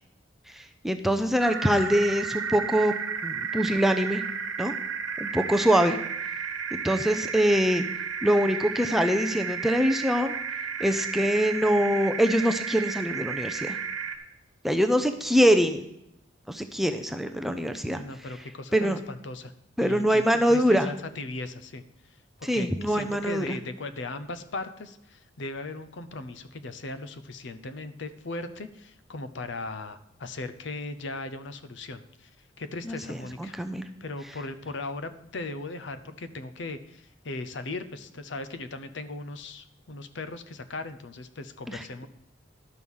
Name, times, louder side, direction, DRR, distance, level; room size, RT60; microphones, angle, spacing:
voice 1, 0.5-2.9 3.2-4.2 4.6-4.7 5.2-6.0 6.7-7.8 8.2-10.3 10.8-13.8 14.6-15.8 16.5-18.0 18.7-19.0 19.8-20.9 22.4-23.6 32.9-33.0 33.4-33.9 41.7-41.8, equal, ahead, 6 dB, 0.5 m, -24 dB
sound 1, 1.4-14.2, right 6 dB, 70° right, 1.4 m, -33 dB
voice 2, 17.9-19.5 19.8-32.3 32.6-33.6 34.0-42.1, left 2 dB, 60° left, 12 dB, 0.7 m, -38 dB
11.5 x 6.3 x 5.4 m, 0.80 s
head